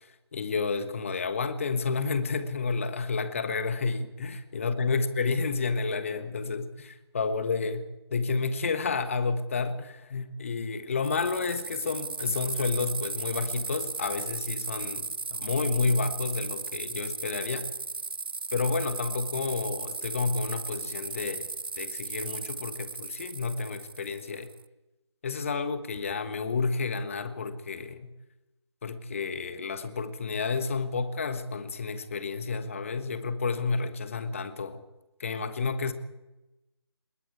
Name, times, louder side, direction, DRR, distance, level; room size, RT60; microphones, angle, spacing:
voice 1, 0.0-17.7 18.5-21.5 21.8-24.5 25.2-28.1 28.8-34.8 35.2-35.9, left 4 dB, 30° left, 11 dB, 1.5 m, -30 dB
sound 1, 11.0-24.6, right 4 dB, 50° right, 0.7 m, -36 dB
26.0 x 21.0 x 4.8 m, 0.99 s
figure-of-eight pair, 155°, 15 cm